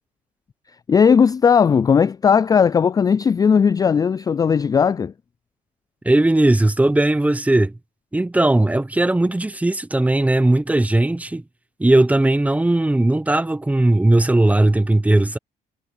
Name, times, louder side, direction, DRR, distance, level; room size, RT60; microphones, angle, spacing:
voice 1, 0.9-5.1, left 6 dB, 20° left, 0.3 m, -16 dB
voice 2, 6.0-7.7 8.1-11.4 11.8-15.4, right 2 dB, 10° right, 1.0 m, -17 dB
cardioid pair, 110°, 17 cm